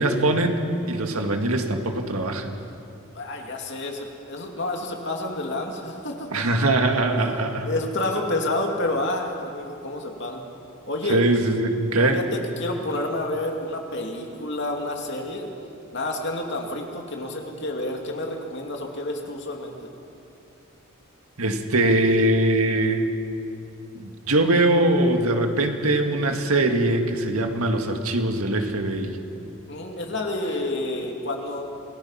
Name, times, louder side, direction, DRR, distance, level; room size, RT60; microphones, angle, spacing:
voice 1, 0.0-2.5 6.3-7.7 11.1-12.2 21.4-23.1 23.9-29.2, right 1 dB, 90° right, 4 dB, 2.0 m, -22 dB
voice 2, 3.1-6.4 7.6-10.5 10.9-11.2 12.1-15.5 15.9-19.7 29.7-31.8, left 1 dB, 55° left, 1 dB, 2.6 m, -29 dB
26.5 x 18.5 x 5.8 m, 2.6 s
head